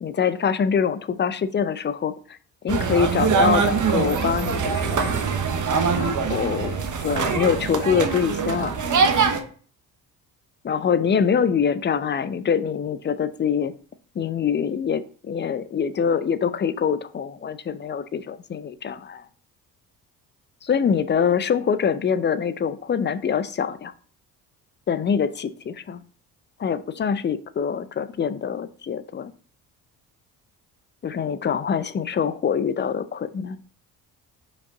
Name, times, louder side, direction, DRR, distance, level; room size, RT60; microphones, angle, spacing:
voice 1, 0.0-2.2 2.6-5.2 5.9-8.8 10.6-13.7 14.2-19.2 20.6-23.9 24.9-26.0 26.6-29.3 31.0-33.6, left 7 dB, 25° left, 0.5 m, -24 dB
sound 1, 2.7-9.4, right 5 dB, 40° right, 1.1 m, -23 dB
5.3 x 5.2 x 3.9 m
hypercardioid pair, 50°, 48 cm